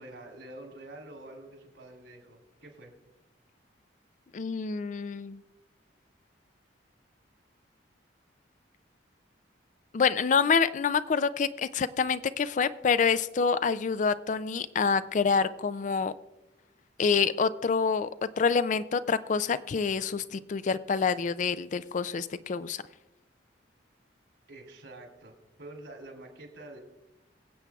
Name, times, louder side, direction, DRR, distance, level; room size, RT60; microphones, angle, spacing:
voice 1, 0.0-2.9 24.5-26.8, right 1 dB, 80° right, 2 dB, 2.9 m, -47 dB
voice 2, 4.3-5.4 9.9-16.1 17.0-18.1 18.4-22.8, left 5 dB, 45° left, 15 dB, 0.4 m, -27 dB
23.5 x 8.1 x 2.4 m, 1.0 s
head